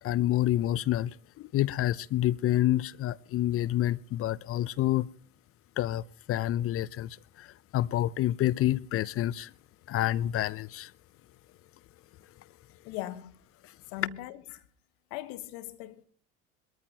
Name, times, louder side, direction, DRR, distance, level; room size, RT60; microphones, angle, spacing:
voice 1, 0.0-5.1 5.8-9.5 9.9-10.9, left 13 dB, 40° left, 0.5 m, -28 dB
voice 2, 12.8-13.3 13.9-14.6 15.1-16.0, left 14 dB, 65° left, 1.2 m, -39 dB
22.0 x 13.5 x 2.8 m
hypercardioid pair, 75°, 36 cm